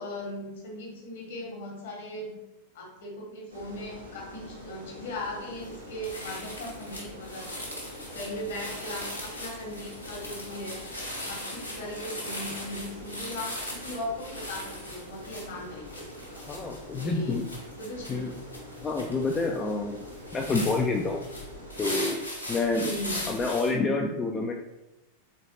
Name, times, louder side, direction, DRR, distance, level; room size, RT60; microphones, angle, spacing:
voice 1, 0.0-2.4 2.7-7.5 8.1-10.8 11.3-16.0 16.9-17.4 17.8-18.2 22.7-23.3, left 1 dB, 55° left, -1 dB, 1.1 m, -38 dB
sound 1, 3.5-21.9, equal, 80° right, 0.9 m, -45 dB
sound 2, 5.6-5.8 6.0-23.7, left 1 dB, 90° left, 1.0 m, -39 dB
voice 2, 16.3-17.4 18.1-18.3 18.8-20.0 20.3-21.2 21.8-22.2 22.5-22.9 23.3-24.5, left 3 dB, 20° left, 1 dB, 0.3 m, -28 dB
3.9 x 3.2 x 2.6 m, 0.94 s
figure-of-eight pair, 90°, 0 cm